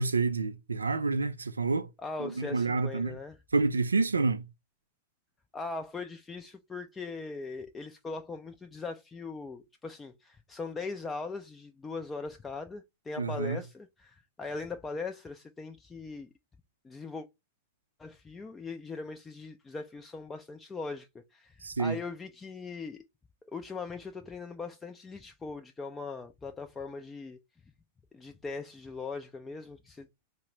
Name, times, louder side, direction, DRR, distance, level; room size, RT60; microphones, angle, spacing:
voice 1, 0.0-1.9 2.2-3.2 3.5-4.4 13.2-13.6 21.6-22.0, right 3 dB, 75° right, 0.3 m, -28 dB
voice 2, 2.0-3.4 5.5-16.3 16.8-17.3 18.0-23.0 23.5-27.4 28.1-30.1, left 4 dB, 15° left, 0.4 m, -40 dB
4.6 x 2.1 x 3.0 m
figure-of-eight pair, 90°, 0 cm